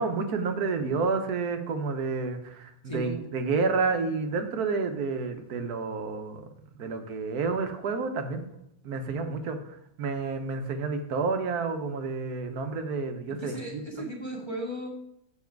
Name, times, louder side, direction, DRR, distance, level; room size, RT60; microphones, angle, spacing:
voice 1, 0.0-6.5 6.8-8.5 8.8-9.6 10.0-14.0, right 4 dB, 85° right, 7 dB, 1.4 m, -30 dB
voice 2, 2.8-3.3 13.3-14.9, right 1 dB, 20° left, -1 dB, 1.5 m, -36 dB
7.3 x 6.4 x 4.5 m, 0.76 s
omnidirectional pair, 1.6 m